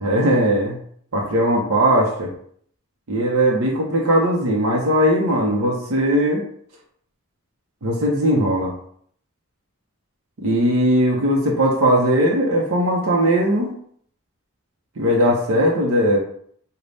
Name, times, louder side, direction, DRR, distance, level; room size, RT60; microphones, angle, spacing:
voice 1, 0.0-0.8 1.1-2.3 3.1-6.4 7.8-8.7 10.4-13.7 15.0-16.2, equal, 85° right, -2 dB, 0.7 m, -19 dB
3.3 x 2.2 x 3.9 m, 0.62 s
head